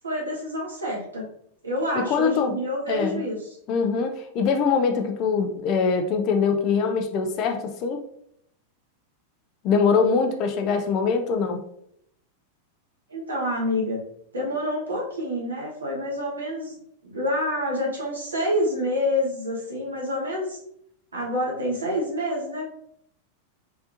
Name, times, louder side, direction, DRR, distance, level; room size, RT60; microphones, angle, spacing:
voice 1, 0.0-1.3 1.6-3.6 13.1-14.0 14.3-16.7 17.0-20.6 21.1-22.7, left 1 dB, 75° right, -3 dB, 1.3 m, -27 dB
voice 2, 1.9-2.6 2.9-3.2 3.7-8.0 9.6-11.6, left 5 dB, 40° left, 6 dB, 0.5 m, -23 dB
3.8 x 3.4 x 2.6 m, 0.70 s
figure-of-eight pair, 90°, 0 cm